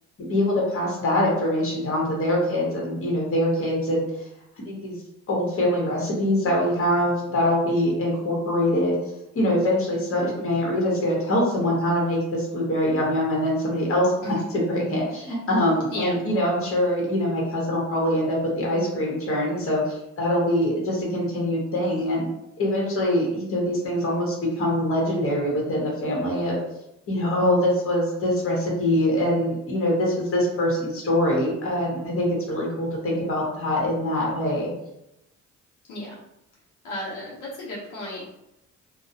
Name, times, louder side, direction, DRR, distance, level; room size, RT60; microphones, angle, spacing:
voice 1, 0.2-4.0 4.6-5.0 5.3-9.0 9.3-22.3 22.6-26.6 27.1-34.7, left 1 dB, 45° left, -3 dB, 1.1 m, -24 dB
voice 2, 36.8-38.3, left 1 dB, 85° left, -5 dB, 0.8 m, -34 dB
2.3 x 2.2 x 2.7 m, 0.86 s
cardioid pair, 90°, 30 cm